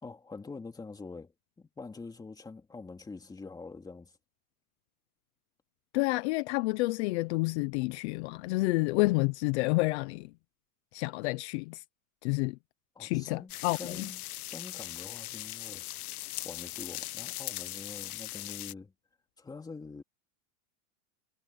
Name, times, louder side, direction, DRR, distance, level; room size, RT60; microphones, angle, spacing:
voice 1, 0.0-1.3 1.6-4.1 12.9-15.8 16.4-18.9 19.4-20.0, left 4 dB, 10° left, 2.7 m, -45 dB
voice 2, 5.9-10.3 10.9-11.8 12.2-12.6 13.0-14.1, left 23 dB, 50° left, 0.8 m, -29 dB
sound 1, 13.5-18.7, left 18 dB, 75° left, 1.0 m, -40 dB
supercardioid pair, 160°, 44 cm